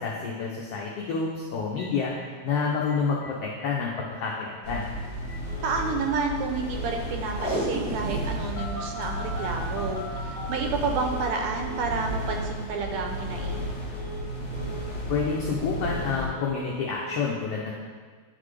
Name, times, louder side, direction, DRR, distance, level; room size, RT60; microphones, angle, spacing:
voice 1, 0.0-2.1 2.4-4.9 15.1-17.7, left 5 dB, 80° left, -3 dB, 1.3 m, -28 dB
Telephone, 1.8-1.9 2.2-2.3 2.5-2.6 2.9-3.3 3.6-3.7 3.9-4.3 4.7-4.8 5.3-6.0 6.7-7.0 7.2-8.0 8.6-11.3 11.5-11.9 12.1-12.5 12.7-13.1 13.3-13.7 13.9-14.3 14.5-14.9 15.1-16.1 16.3-16.7 16.9-17.2, right 1 dB, 60° left, 1.5 m, -40 dB
sound 1, 4.6-16.3, equal, 30° left, 1.8 m, -33 dB
voice 2, 5.6-13.7, right 4 dB, 80° right, 3 dB, 1.7 m, -30 dB
Packing tape duct tape, 7.2-8.4 8.7-9.0 9.7-10.0 11.0-11.2 11.8-11.9, right 1 dB, 20° right, 0.8 m, -31 dB
9.7 x 4.0 x 3.2 m, 1.5 s
omnidirectional pair, 3.5 m